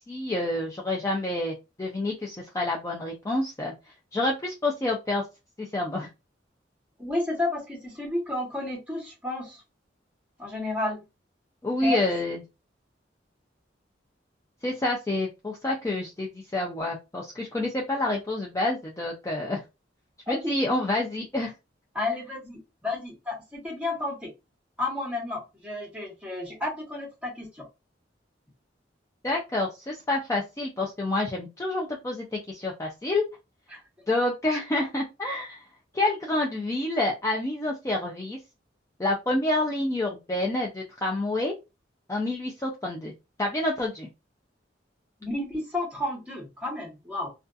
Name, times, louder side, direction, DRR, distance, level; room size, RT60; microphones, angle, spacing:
voice 1, 0.1-3.7 4.1-5.2 5.6-6.1 11.6-12.4 14.6-19.6 20.3-21.5 29.2-33.2 34.1-35.6 35.9-38.4 39.0-41.5 42.1-43.1 43.4-44.1, left 2 dB, 15° left, -1 dB, 0.4 m, -28 dB
voice 2, 7.0-9.6 10.4-11.0 11.8-12.0 20.3-20.5 21.9-24.3 24.8-27.7 45.2-47.3, left 2 dB, 5° right, -1 dB, 1.0 m, -31 dB
2.4 x 2.3 x 2.5 m, 0.26 s
head